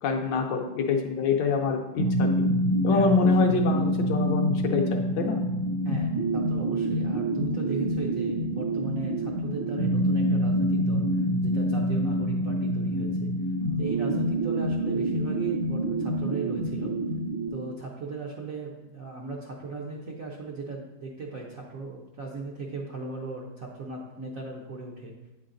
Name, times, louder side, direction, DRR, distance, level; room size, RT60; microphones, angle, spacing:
voice 1, 0.0-2.3 2.8-4.8 5.2-5.4, left 5 dB, 70° left, 3 dB, 1.2 m, -26 dB
sound 1, 2.0-17.5, right 1 dB, 35° left, 0.7 m, -26 dB
voice 2, 2.9-3.6 5.8-13.3 13.8-16.9 17.5-25.1, right 3 dB, 65° right, -2 dB, 0.8 m, -37 dB
8.7 x 4.0 x 3.8 m, 1.1 s
omnidirectional pair, 2.2 m